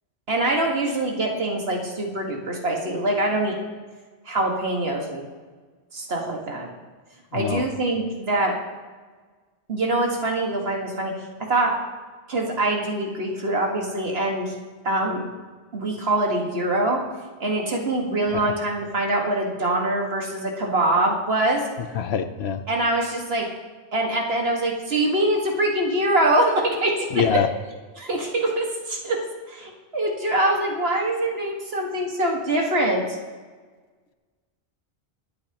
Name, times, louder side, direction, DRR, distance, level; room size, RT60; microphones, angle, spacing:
voice 1, 0.3-3.6 4.3-5.2 5.9-6.7 7.3-8.6 9.7-11.1 11.4-11.7 12.3-14.5 14.8-15.3 15.7-17.0 17.4-21.6 22.7-23.5 23.9-27.4 28.0-29.2 29.5-33.2, right 1 dB, 65° right, 0 dB, 2.0 m, -24 dB
voice 2, 22.0-22.6 27.1-27.5, left 8 dB, 75° left, 10 dB, 1.0 m, -23 dB
24.0 x 8.4 x 3.0 m, 1.4 s
omnidirectional pair, 1.1 m